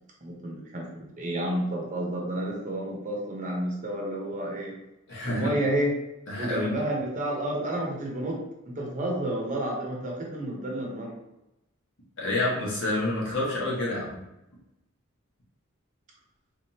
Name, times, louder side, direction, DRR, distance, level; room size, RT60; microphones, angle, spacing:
voice 1, 0.2-0.8 1.2-4.7 5.3-5.9 6.4-8.4 8.6-11.1, right 1 dB, 35° right, -1 dB, 0.9 m, -30 dB
voice 2, 5.1-5.5 6.3-6.8 12.2-14.2, left 2 dB, 60° left, -5 dB, 1.3 m, -28 dB
3.6 x 3.4 x 2.9 m, 0.90 s
head